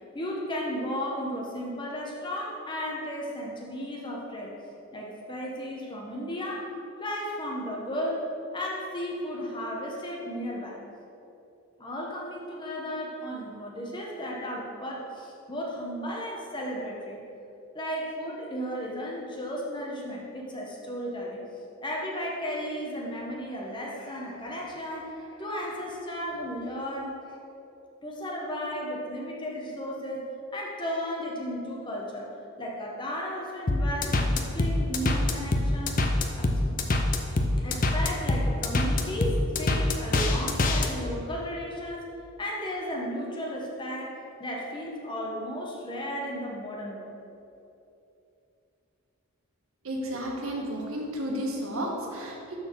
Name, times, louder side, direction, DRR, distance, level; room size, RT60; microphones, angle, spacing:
voice 1, 0.1-4.5 4.9-6.7 7.0-8.2 8.5-10.8 11.8-17.2 17.7-21.4 21.8-27.4 28.0-30.2 30.5-36.0 36.4-36.8 37.6-42.1 42.4-47.1, equal, 20° left, -2 dB, 1.0 m, -34 dB
sound 1, 33.7-40.9, left 2 dB, 35° left, 0.6 m, -24 dB
voice 2, 49.8-52.6, equal, 65° right, -1 dB, 1.4 m, -32 dB
12.0 x 4.3 x 4.6 m, 2.7 s
head